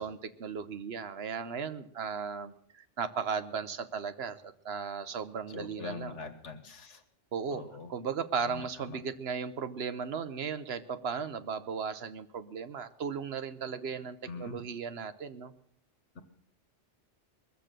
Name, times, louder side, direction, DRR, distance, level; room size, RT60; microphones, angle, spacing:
voice 1, 0.0-6.3 7.3-7.6 7.9-15.5, right 6 dB, 65° right, 11 dB, 1.0 m, -36 dB
voice 2, 5.5-7.0 7.5-7.9 8.4-9.0 14.3-14.6, left 5 dB, 80° left, 8 dB, 1.6 m, -43 dB
21.5 x 7.5 x 6.6 m, 0.70 s
omnidirectional pair, 1.2 m